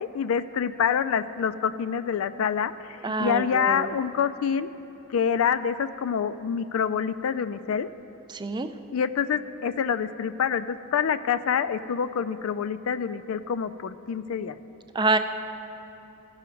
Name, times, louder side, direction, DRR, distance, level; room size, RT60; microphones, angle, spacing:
voice 1, 0.0-4.7 5.1-7.9 8.9-14.5, left 7 dB, 70° left, 13 dB, 0.3 m, -26 dB
voice 2, 3.0-3.9 8.3-8.7 14.9-15.2, right 3 dB, 20° right, 8 dB, 0.3 m, -26 dB
15.5 x 5.7 x 5.1 m, 3.0 s
head